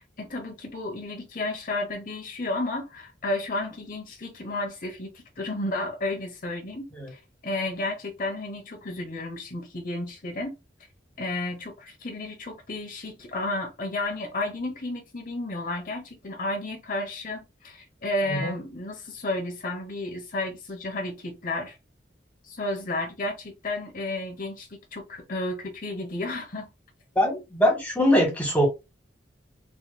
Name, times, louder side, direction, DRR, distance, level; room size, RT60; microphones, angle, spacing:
voice 1, 0.0-10.6 11.2-21.8 22.4-26.7, left 2 dB, 50° left, 1.1 m, -32 dB
voice 2, 27.1-28.7, equal, 10° left, 1.7 m, -22 dB
4.8 x 2.9 x 2.3 m
head